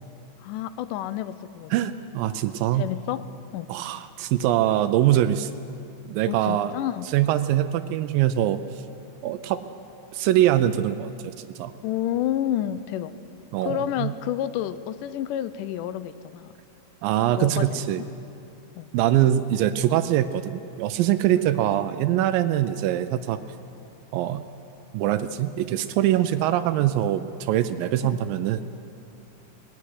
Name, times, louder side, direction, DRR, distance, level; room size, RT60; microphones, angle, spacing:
voice 1, 0.4-1.9 2.7-3.3 3.5-3.7 6.3-7.1 11.8-13.1 13.6-16.5 17.4-18.1 18.8-18.9 21.3-21.5 28.0-28.2, left 11 dB, 80° left, 14 dB, 2.1 m, -30 dB
voice 2, 1.7-2.9 3.7-5.5 6.1-6.7 7.1-8.6 9.2-9.6 10.1-11.7 13.5-14.1 17.0-18.0 18.9-23.4 24.1-24.4 24.9-28.6, right 12 dB, 85° right, 10 dB, 2.4 m, -23 dB
20.5 x 15.5 x 9.8 m, 2.7 s
omnidirectional pair, 4.0 m